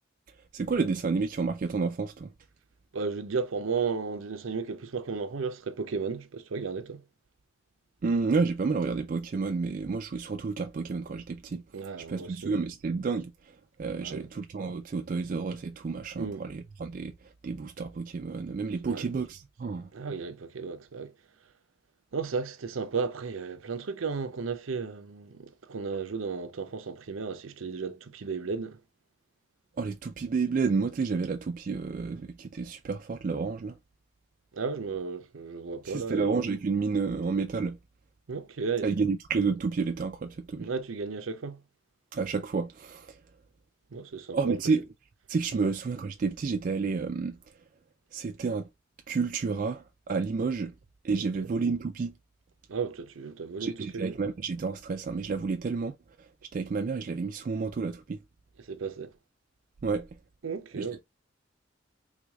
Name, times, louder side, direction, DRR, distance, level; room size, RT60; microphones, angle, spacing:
voice 1, 0.5-2.3 8.0-11.6 12.1-13.3 13.8-17.1 17.4-19.9 29.8-33.7 35.9-37.8 38.8-40.7 42.1-43.2 44.3-44.8 45.3-47.4 48.1-48.7 49.1-50.7 51.0-52.1 53.6-56.0 56.5-58.2 59.8-60.1 60.8-60.9, right 4 dB, 40° right, 0.3 m, -30 dB
voice 2, 2.9-7.0 11.7-12.6 14.0-14.3 16.2-16.4 18.8-19.0 19.9-21.1 22.1-28.8 34.5-36.3 38.3-38.9 40.6-41.6 43.9-44.6 45.5-45.7 51.2-51.5 52.7-54.2 58.6-59.1 60.4-61.0, right 5 dB, 85° right, 0.6 m, -34 dB
3.5 x 3.2 x 2.3 m
head